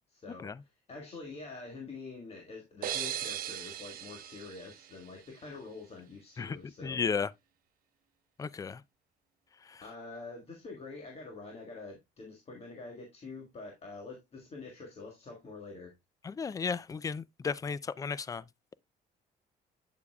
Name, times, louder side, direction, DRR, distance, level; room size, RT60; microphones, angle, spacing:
voice 1, 0.1-7.1 9.8-15.9, left 3 dB, 35° left, 1.7 m, -46 dB
sound 1, 2.8-5.6, right 11 dB, 55° right, 0.8 m, -39 dB
voice 2, 6.8-7.3 8.4-8.8 16.2-18.4, left 5 dB, 20° left, 0.3 m, -34 dB
8.5 x 6.8 x 2.3 m
cardioid pair, 110°, 17 cm